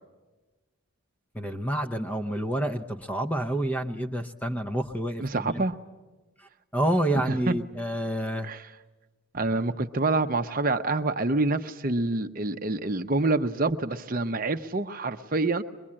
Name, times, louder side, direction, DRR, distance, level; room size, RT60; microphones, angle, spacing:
voice 1, 1.3-5.6 6.7-8.5, right 1 dB, 5° left, 7 dB, 0.7 m, -28 dB
voice 2, 5.2-5.7 7.1-7.5 8.4-8.7 9.3-15.6, right 2 dB, 40° right, 7 dB, 0.7 m, -27 dB
23.0 x 22.0 x 8.7 m, 1.2 s
head